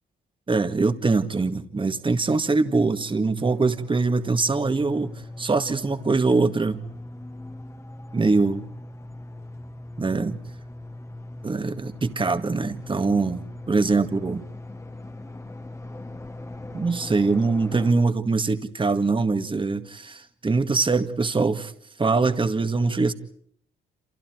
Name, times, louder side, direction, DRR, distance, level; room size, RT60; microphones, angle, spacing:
voice 1, 0.5-6.8 8.1-8.6 10.0-10.4 11.4-14.4 16.7-21.7 22.0-23.1, right 3 dB, 25° right, 9 dB, 2.1 m, -23 dB
sound 1, 3.4-17.9, left 2 dB, 15° left, 2.0 m, -39 dB
29.5 x 27.5 x 4.7 m, 0.64 s
cardioid pair, 90°, 20 cm